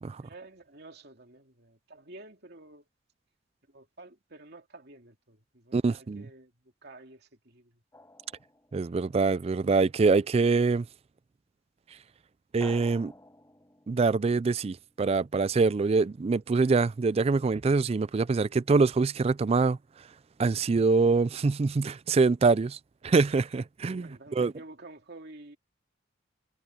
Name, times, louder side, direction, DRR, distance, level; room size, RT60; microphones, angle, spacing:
voice 1, 0.2-2.8 3.7-7.8 24.0-25.6, right 2 dB, 55° right, 2.8 m, -50 dB
voice 2, 5.7-6.3 8.7-10.9 12.5-13.1 13.9-19.8 20.4-22.8 23.0-24.5, right 4 dB, 30° right, 0.3 m, -24 dB
Drum, 7.9-9.5 12.6-15.3, left 2 dB, 15° left, 4.6 m, -52 dB
head